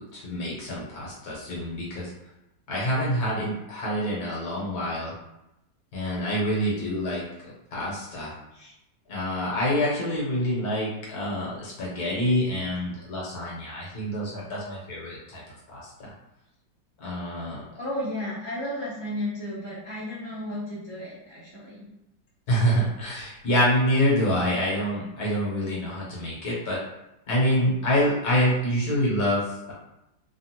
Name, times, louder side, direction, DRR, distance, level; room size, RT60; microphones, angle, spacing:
voice 1, 0.0-2.1 2.7-5.1 5.9-7.2 7.7-8.7 9.1-15.4 15.7-16.1 17.0-17.6 22.5-26.8 27.3-29.7, equal, 60° left, -5 dB, 1.2 m, -26 dB
voice 2, 17.8-21.8, left 1 dB, 25° right, -10 dB, 0.5 m, -33 dB
3.3 x 2.3 x 2.8 m, 0.89 s
omnidirectional pair, 2.1 m